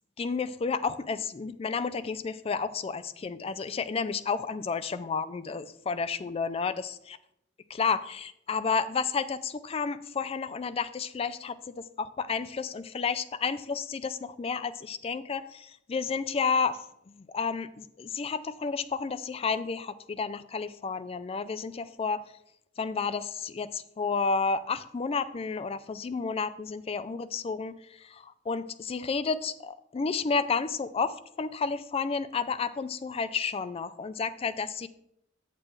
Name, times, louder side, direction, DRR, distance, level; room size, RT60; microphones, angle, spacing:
voice 1, 0.2-6.9 7.7-22.2 22.8-34.9, left 5 dB, 30° left, 13 dB, 0.4 m, -31 dB
8.2 x 7.4 x 3.2 m, 0.77 s
head